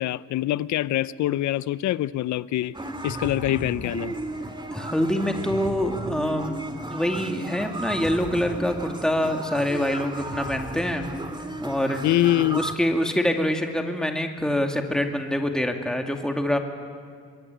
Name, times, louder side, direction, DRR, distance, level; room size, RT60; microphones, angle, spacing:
voice 1, 0.0-2.8 3.0-4.1 12.0-12.6, left 14 dB, 70° left, 18 dB, 0.6 m, -24 dB
sound 1, 2.7-12.8, right 2 dB, 15° right, 2.3 m, -34 dB
voice 2, 4.7-6.6 6.9-11.1 11.6-12.0 12.5-16.6, left 1 dB, ahead, 4 dB, 2.4 m, -25 dB
25.5 x 22.5 x 9.2 m, 2.1 s
cardioid pair, 90°, 30 cm